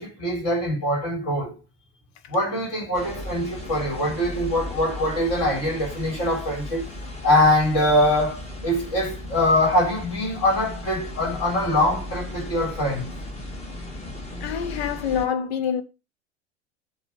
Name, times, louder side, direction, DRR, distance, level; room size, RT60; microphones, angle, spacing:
voice 1, 0.0-1.6 2.3-6.8 7.2-13.1, left 1 dB, 40° left, 3.7 m, -23 dB
sound 1, 2.9-15.3, left 1 dB, 15° left, 1.6 m, -36 dB
voice 2, 14.4-15.8, left 8 dB, 60° left, 0.9 m, -26 dB
7.1 x 3.2 x 5.7 m
figure-of-eight pair, 80°, 36 cm